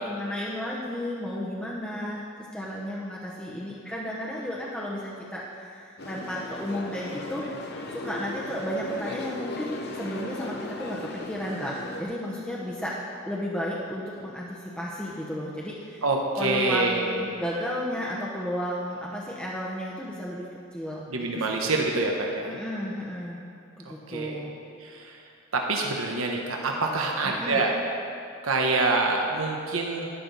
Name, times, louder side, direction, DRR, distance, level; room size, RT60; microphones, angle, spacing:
voice 1, 0.0-2.2 2.5-7.5 7.9-13.0 13.3-16.0 16.4-21.8 22.5-23.4 23.8-24.5 27.2-27.6, equal, 5° left, -6 dB, 0.9 m, -33 dB
sound 1, 6.0-12.0, left 2 dB, 50° left, 1.0 m, -37 dB
voice 2, 16.0-17.2 21.1-22.5 24.1-24.4 24.8-25.1 25.5-27.7 28.4-30.1, right 3 dB, 80° right, 0 dB, 1.1 m, -26 dB
12.0 x 11.0 x 4.1 m, 2.5 s
head